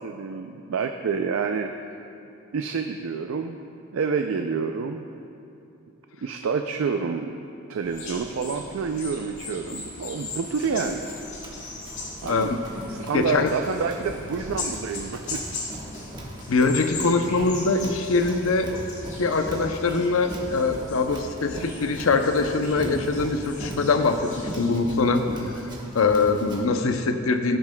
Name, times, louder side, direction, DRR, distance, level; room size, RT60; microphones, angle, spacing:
voice 1, 0.0-1.7 2.5-3.6 3.9-5.0 6.2-7.3 7.7-11.1 12.2-12.6 12.9-15.4, right 5 dB, 80° right, 5 dB, 0.4 m, -28 dB
sound 1, 7.8-24.7, left 3 dB, 60° left, 2.1 m, -39 dB
Run, 10.4-26.6, equal, 20° right, 1.1 m, -40 dB
voice 2, 12.2-12.6 13.1-13.5 16.5-18.7 19.2-24.2 24.6-25.2 25.9-27.6, left 3 dB, 85° left, 6 dB, 0.6 m, -23 dB
17.0 x 7.0 x 2.2 m, 2.7 s
head